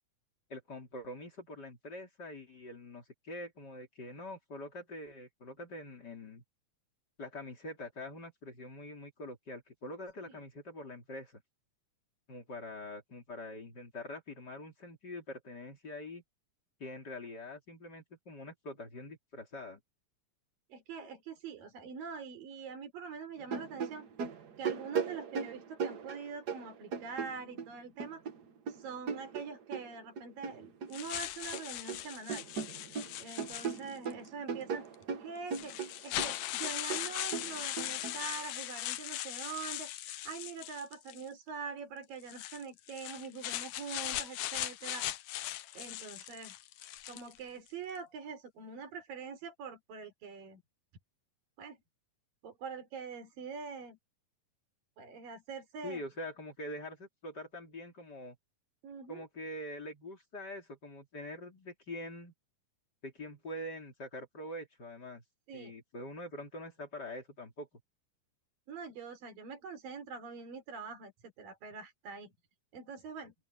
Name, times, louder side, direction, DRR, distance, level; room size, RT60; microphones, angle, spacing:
voice 1, 0.5-6.4 7.2-11.4 12.3-16.2 16.8-19.8 55.8-58.3 59.1-62.3 63.0-65.2 65.5-67.7, left 1 dB, 30° left, 3.4 m, -44 dB
voice 2, 20.7-24.1 24.6-28.3 28.7-32.4 33.2-34.8 35.2-35.7 36.0-45.1 45.8-46.6 47.1-50.6 51.6-51.8 52.4-54.0 55.0-56.0 58.8-59.2 65.5-65.7 68.7-71.1 71.4-72.3 72.7-73.3, right 5 dB, 90° right, 5.5 m, -44 dB
sound 1, 23.4-27.7 28.0-31.0 31.3-32.0 32.3-38.2, right 6 dB, 65° right, 0.9 m, -38 dB
sound 2, 30.9-34.1 34.9-35.0 35.5-41.3 42.2-47.4, left 14 dB, 75° left, 2.2 m, -39 dB
open air
omnidirectional pair, 3.9 m